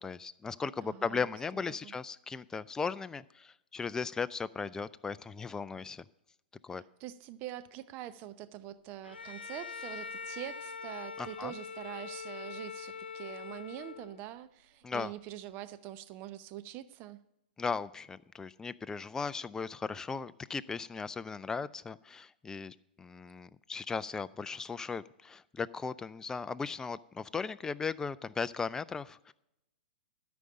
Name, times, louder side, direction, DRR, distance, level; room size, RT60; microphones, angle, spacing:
voice 1, 0.0-6.0 6.6-6.8 11.2-11.5 14.8-15.1 17.6-29.3, left 5 dB, 10° left, 16 dB, 0.4 m, -37 dB
voice 2, 0.8-1.9 6.7-17.2, right 13 dB, 40° right, 13 dB, 0.7 m, -44 dB
Bowed string instrument, 9.0-14.3, left 5 dB, 90° left, 0.5 m, -43 dB
12.5 x 5.2 x 8.6 m, 0.87 s
hypercardioid pair, 115°, 5 cm